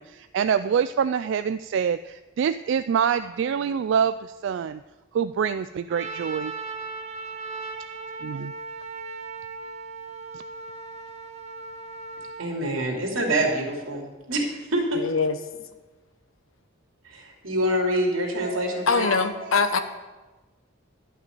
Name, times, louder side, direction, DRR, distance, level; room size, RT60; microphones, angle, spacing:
voice 1, 0.0-4.8 5.1-6.5 8.2-8.5, right 7 dB, 60° right, 0.3 m, -25 dB
Trumpet, 5.9-12.5, right 4 dB, 35° right, 1.0 m, -37 dB
voice 2, 12.4-15.0 17.0-19.8, right 1 dB, 90° right, 2.8 m, -26 dB
voice 3, 15.0-15.4 18.9-19.8, left 4 dB, 80° left, 1.0 m, -23 dB
11.5 x 6.0 x 9.2 m
head